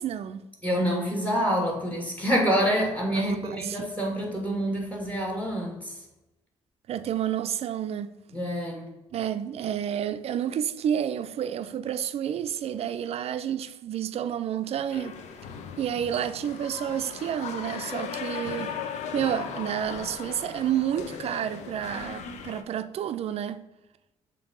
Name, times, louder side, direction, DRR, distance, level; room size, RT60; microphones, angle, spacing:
voice 1, 0.0-0.4 3.1-3.9 6.9-8.1 9.1-15.2 15.8-18.7 19.1-23.6, right 10 dB, 60° right, 0.4 m, -30 dB
voice 2, 0.6-5.9 8.3-8.9, equal, 10° left, 2.0 m, -27 dB
sound 1, 14.9-22.6, left 6 dB, 75° left, 0.6 m, -37 dB
7.0 x 2.8 x 5.2 m
cardioid pair, 85°, 12 cm